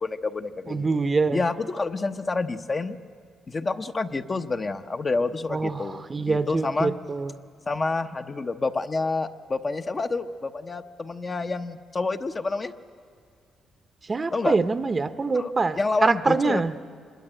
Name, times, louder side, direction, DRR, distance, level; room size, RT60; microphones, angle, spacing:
voice 1, 0.0-0.9 1.3-3.0 3.5-6.9 7.7-12.7 14.3-14.6 15.3-15.5 15.8-16.8, left 3 dB, 30° left, 7 dB, 1.0 m, -28 dB
voice 2, 0.7-1.4 5.5-7.3 14.1-16.7, right 4 dB, 30° right, 11 dB, 0.9 m, -25 dB
25.5 x 21.5 x 8.9 m, 2.2 s
cardioid pair, 90°, 0 cm